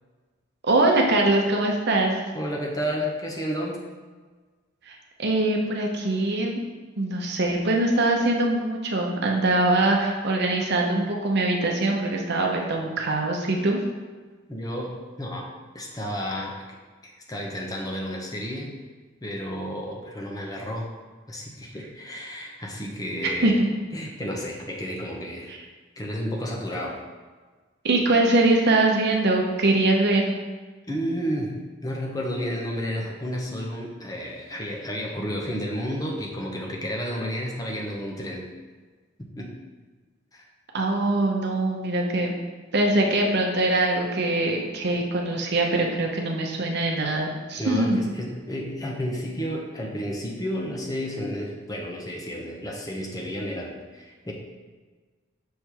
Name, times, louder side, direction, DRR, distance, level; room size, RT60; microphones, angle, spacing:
voice 1, 0.6-2.1 4.9-6.6 7.0-13.8 23.2-23.6 27.8-30.3 40.7-42.3 42.7-48.0, right 2 dB, 55° right, 1 dB, 0.8 m, -23 dB
voice 2, 2.3-3.8 14.5-16.6 17.0-18.7 19.2-20.9 21.3-23.6 23.9-25.5 26.0-27.0 30.9-38.5 39.2-39.5 40.3-40.5 47.6-54.3, equal, 20° left, -1 dB, 0.9 m, -31 dB
6.5 x 3.5 x 4.5 m, 1.4 s
head